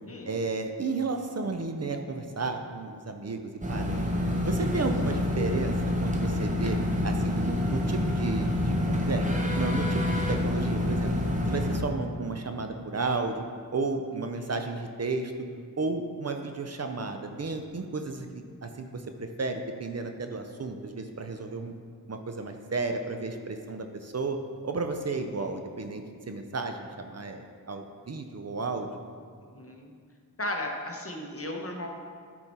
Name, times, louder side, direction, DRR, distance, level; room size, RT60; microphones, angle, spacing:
voice 1, 0.3-4.0 4.4-5.7 6.0-6.8 7.0-9.3 9.5-11.1 11.5-13.4 13.7-15.3 15.8-21.7 22.1-24.4 24.6-28.9, right 3 dB, 45° right, 5 dB, 0.6 m, -33 dB
sound 1, 3.6-11.8, left 1 dB, 20° right, 1.1 m, -27 dB
voice 2, 25.1-25.6 29.5-29.9 30.4-31.9, left 1 dB, 40° left, 2 dB, 1.0 m, -36 dB
9.9 x 4.4 x 4.3 m, 2.1 s
wide cardioid pair, 65°, 35 cm